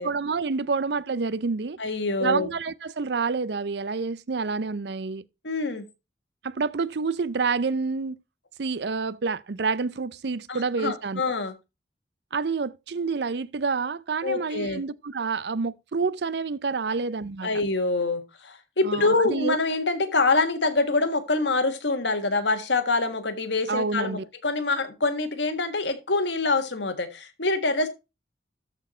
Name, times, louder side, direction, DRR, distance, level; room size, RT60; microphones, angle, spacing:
voice 1, 0.0-1.8 2.2-5.2 6.4-8.2 8.6-11.2 12.3-17.5 18.8-19.5 23.7-24.2, right 4 dB, 65° right, 0.5 m, -28 dB
voice 2, 1.8-2.5 5.4-5.9 10.5-11.5 14.2-14.8 17.0-17.1 17.4-27.9, left 3 dB, 80° left, 1.7 m, -25 dB
13.5 x 4.6 x 4.3 m
head